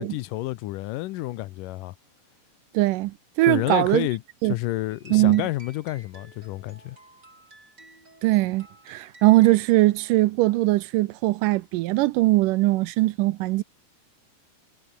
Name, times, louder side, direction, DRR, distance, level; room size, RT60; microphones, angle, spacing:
voice 1, 0.0-2.0 3.5-7.0, left 17 dB, 85° left, 2.3 m, -30 dB
voice 2, 2.7-4.1 4.4-4.5 5.1-5.5 8.2-13.6, right 19 dB, 85° right, 2.2 m, -21 dB
sound 1, 4.9-10.2, right 2 dB, 30° right, 7.7 m, -52 dB
omnidirectional pair, 3.9 m